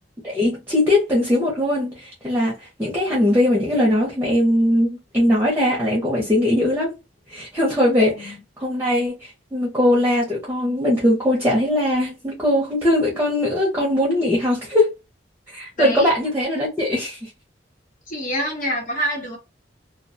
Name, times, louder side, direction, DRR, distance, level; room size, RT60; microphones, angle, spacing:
voice 1, 0.2-2.5 2.8-6.9 7.3-8.3 8.6-9.1 9.5-14.9 15.5-17.2, left 1 dB, 10° right, 0.7 m, -20 dB
voice 2, 8.0-8.4 15.8-16.1 18.1-19.4, equal, 45° left, 1.0 m, -26 dB
2.4 x 2.2 x 2.6 m
head